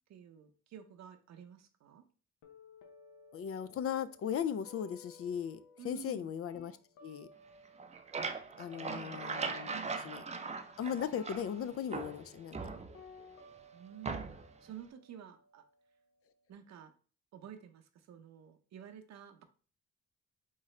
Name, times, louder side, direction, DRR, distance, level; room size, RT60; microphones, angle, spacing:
voice 1, 0.1-2.0 5.8-6.3 8.6-9.2 9.5-10.0 13.7-15.6 16.5-16.9 17.3-19.4, right 9 dB, 60° right, 7 dB, 0.7 m, -51 dB
sound 1, 2.4-8.4 8.6-16.4, left 3 dB, 80° left, 0.9 m, -59 dB
voice 2, 3.3-5.6 5.8-6.8 7.0-7.3 8.6-9.8 10.0-10.2 10.8-12.6, left 8 dB, 50° left, 14 dB, 0.4 m, -37 dB
sound 2, 7.6-11.6 11.9-13.2 14.0-14.6, right 4 dB, 25° right, 0.5 m, -40 dB
3.9 x 3.7 x 3.2 m, 0.40 s
cardioid pair, 90°, 30 cm